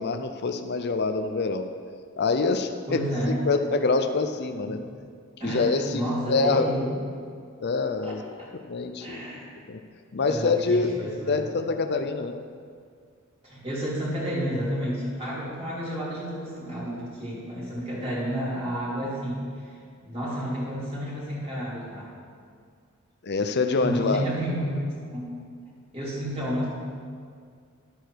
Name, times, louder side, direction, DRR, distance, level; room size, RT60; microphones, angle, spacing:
voice 1, 0.0-1.6 2.2-3.0 3.3-4.8 5.4-6.0 6.3-6.7 7.6-8.2 8.5-9.2 9.7-9.8 10.1-10.9 11.3-12.4 23.2-24.2, left 4 dB, 50° left, 7 dB, 0.6 m, -25 dB
voice 2, 2.9-3.4 4.7-4.8 5.4-7.0 8.0-8.5 9.0-9.5 10.2-11.5 13.4-19.8 20.0-22.1 23.8-25.4 25.9-26.7, equal, 30° right, -7 dB, 3.4 m, -31 dB
11.5 x 11.0 x 4.7 m, 2.2 s
head